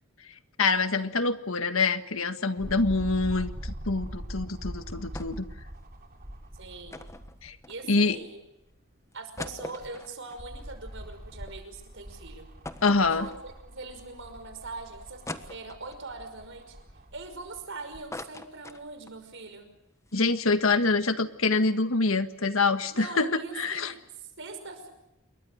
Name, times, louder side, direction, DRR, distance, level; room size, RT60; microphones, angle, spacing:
voice 1, 0.6-5.5 7.4-7.6 7.9-8.2 12.8-13.3 20.1-23.3 23.6-23.9, left 3 dB, 70° left, 9 dB, 1.7 m, -25 dB
sound 1, 2.6-7.6 8.1-8.2 9.5-18.1 18.8-18.9, equal, 45° right, 3.6 m, -42 dB
sound 2, 5.1-5.6 5.8-5.9 6.9-8.2 8.7-8.8 9.1-11.6 11.9-12.0 12.6-13.8 14.3-14.4 15.3-16.1 16.6-17.6 17.9-19.2 19.6-19.7 19.9-20.1, left 2 dB, 15° left, 1.4 m, -42 dB
voice 2, 6.6-7.0 7.7-8.4 9.1-12.5 13.0-16.8 17.1-19.7 22.9-24.9, right 3 dB, 65° right, 8 dB, 5.7 m, -42 dB
28.5 x 23.0 x 6.5 m, 0.88 s
head